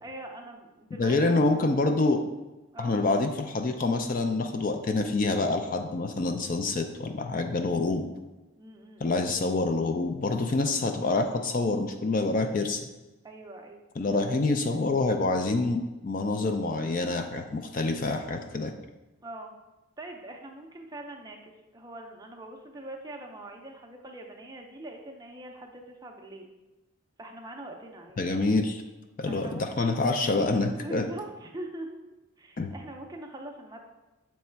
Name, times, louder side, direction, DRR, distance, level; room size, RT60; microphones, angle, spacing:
voice 1, 0.0-1.7 2.7-3.0 8.6-9.2 13.2-13.8 19.2-19.5 20.0-26.5 27.2-28.2 29.3-30.0 30.7-32.0 32.4-33.8, right 1 dB, 15° right, 2 dB, 0.5 m, -43 dB
voice 2, 1.0-2.2 2.8-8.1 9.0-12.8 14.0-18.7 28.2-28.8 29.2-31.0 32.6-32.7, left 3 dB, 40° left, 6 dB, 0.4 m, -26 dB
6.7 x 3.1 x 4.5 m, 1.1 s
head